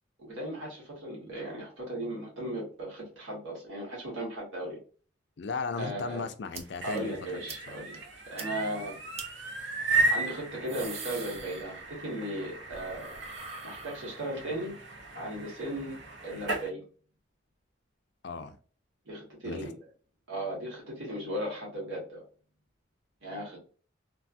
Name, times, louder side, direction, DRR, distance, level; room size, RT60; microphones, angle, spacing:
voice 1, 0.2-4.8 5.7-6.3 6.8-8.0 8.3-9.0 10.1-13.1 13.6-14.8 15.1-16.0 16.2-16.8 19.0-19.8 20.3-22.2 23.2-23.6, right 1 dB, 90° right, 1.4 m, -36 dB
voice 2, 5.4-7.1 7.5-7.8 18.2-18.6 19.4-19.7, left 4 dB, 60° left, 0.4 m, -36 dB
sound 1, 6.5-6.6 7.0-7.1 7.5-7.6 7.9-8.0 8.4-8.5 9.2-9.3 10.4-12.1 12.4-14.5, right 4 dB, 30° right, 0.4 m, -44 dB
sound 2, 6.6-16.7, right 2 dB, 70° right, 0.7 m, -35 dB
3.2 x 2.2 x 2.5 m
head